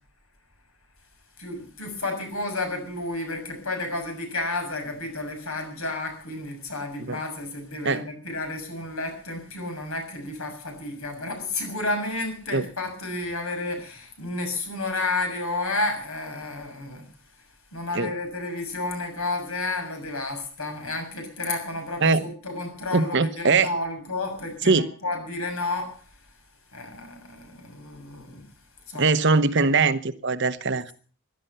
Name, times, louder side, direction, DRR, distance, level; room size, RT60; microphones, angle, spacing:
voice 1, 1.4-17.1 17.7-25.9 26.7-28.4 28.9-29.1, left 2 dB, 70° left, 6.6 m, -31 dB
voice 2, 22.9-23.7 24.6-24.9 28.9-30.9, right 4 dB, 55° right, 1.0 m, -21 dB
16.0 x 12.5 x 6.7 m
head